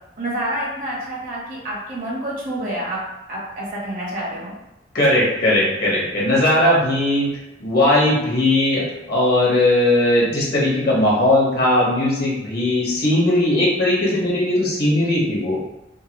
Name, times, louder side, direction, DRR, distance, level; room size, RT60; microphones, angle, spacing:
voice 1, 0.2-3.0 3.3-4.6, right 1 dB, 50° right, -5 dB, 1.2 m, -28 dB
voice 2, 4.9-7.3 7.6-15.6, left 1 dB, 60° left, -5 dB, 1.4 m, -18 dB
3.8 x 2.2 x 3.0 m, 0.95 s
head